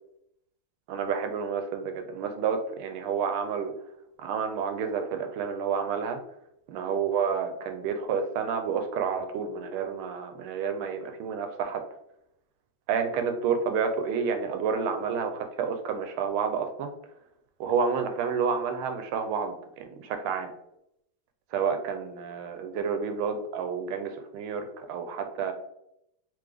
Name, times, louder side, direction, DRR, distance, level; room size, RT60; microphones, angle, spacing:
voice 1, 0.9-3.7 4.2-6.2 6.7-11.8 12.9-16.9 17.6-20.5 21.5-25.5, right 6 dB, 80° right, 6 dB, 1.4 m, -29 dB
3.6 x 3.5 x 3.3 m, 0.77 s
omnidirectional pair, 2.4 m